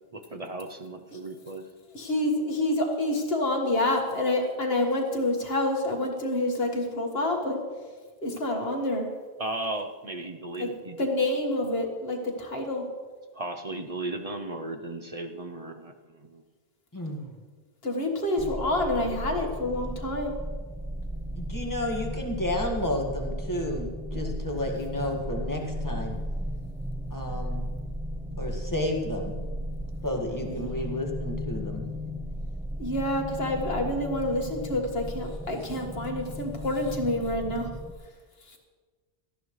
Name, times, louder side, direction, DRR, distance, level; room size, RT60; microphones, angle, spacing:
voice 1, 0.1-1.6 9.4-11.1 13.3-16.4 24.1-24.2, right 2 dB, 40° right, 5 dB, 0.8 m, -36 dB
voice 2, 1.9-7.6 8.2-9.1 10.6-10.7 11.0-12.9 17.8-20.4 30.5-30.7 32.8-37.7 38.5-38.6, left 1 dB, 70° left, 2 dB, 2.0 m, -28 dB
voice 3, 16.9-17.3 21.4-26.2 27.1-27.7 28.4-29.3 30.0-31.8, left 1 dB, 20° left, 0 dB, 1.8 m, -31 dB
sound 1, 18.4-37.9, equal, 5° right, 0.5 m, -35 dB
18.0 x 13.5 x 3.2 m, 1.5 s
omnidirectional pair, 1.1 m